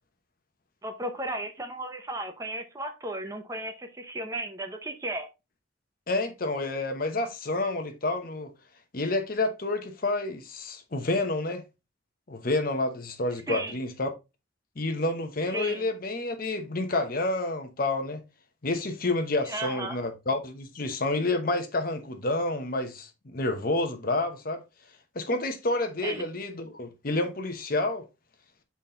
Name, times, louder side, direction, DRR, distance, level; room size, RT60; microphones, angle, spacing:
voice 1, 0.8-5.3 13.5-13.7 15.5-15.8 19.5-20.0 26.0-26.2, right 1 dB, 15° right, 0.8 m, -34 dB
voice 2, 6.1-8.5 8.9-11.6 12.3-14.1 14.8-18.2 18.6-24.6 25.1-28.0, left 2 dB, 50° left, 0.9 m, -29 dB
6.2 x 4.2 x 3.7 m
head